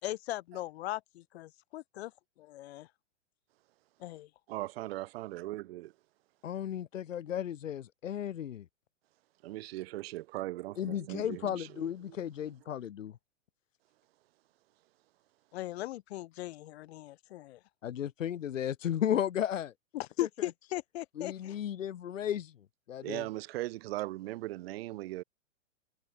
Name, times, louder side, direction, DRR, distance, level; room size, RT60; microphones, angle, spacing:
voice 1, 0.0-2.1 2.4-2.9 4.0-4.3 15.5-17.6 19.9-21.6, left 15 dB, 55° left, 5.8 m, -38 dB
voice 2, 4.5-5.9 9.4-12.5 23.0-25.2, right 17 dB, 50° right, 4.1 m, -39 dB
voice 3, 6.4-8.7 10.8-13.1 17.8-19.7 21.2-22.6 22.9-23.2, left 10 dB, 85° left, 2.6 m, -34 dB
hypercardioid pair, 150°, 38 cm